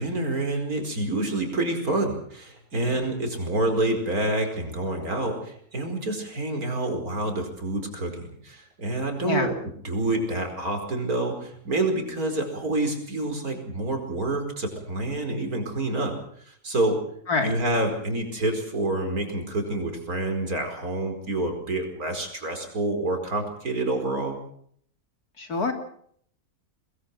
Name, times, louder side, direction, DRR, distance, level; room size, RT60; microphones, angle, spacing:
voice 1, 0.0-9.6 9.8-16.2 16.5-17.0 17.4-24.4, right 2 dB, 70° right, 5 dB, 5.3 m, -27 dB
voice 2, 25.4-25.7, left 3 dB, 80° left, 5 dB, 3.6 m, -25 dB
22.5 x 22.5 x 5.9 m, 0.63 s
omnidirectional pair, 1.6 m